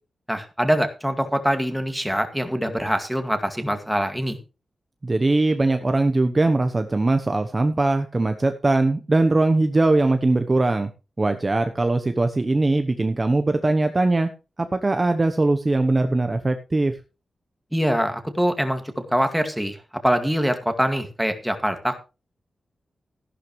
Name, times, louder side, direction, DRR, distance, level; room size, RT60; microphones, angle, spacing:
voice 1, 0.3-4.4 17.7-18.8 19.1-19.8 20.0-22.0, equal, ahead, 7 dB, 2.1 m, -23 dB
voice 2, 5.0-10.9 11.2-14.3 14.7-16.9, right 2 dB, 25° right, 7 dB, 1.0 m, -21 dB
14.5 x 11.5 x 3.2 m, 0.30 s
wide cardioid pair, 115°, 0 cm